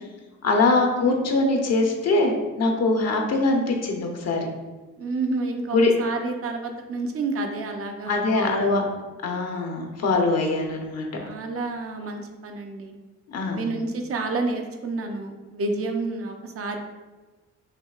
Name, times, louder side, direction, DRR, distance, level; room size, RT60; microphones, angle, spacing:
voice 1, 0.4-4.5 5.7-5.9 8.1-8.8 9.2-11.2 13.3-13.7, left 3 dB, 55° left, 2 dB, 0.8 m, -22 dB
voice 2, 5.0-8.9 11.2-13.0 13.5-16.8, right 3 dB, 50° right, 4 dB, 0.6 m, -29 dB
5.7 x 2.8 x 2.4 m, 1.2 s
cardioid pair, 90°, 30 cm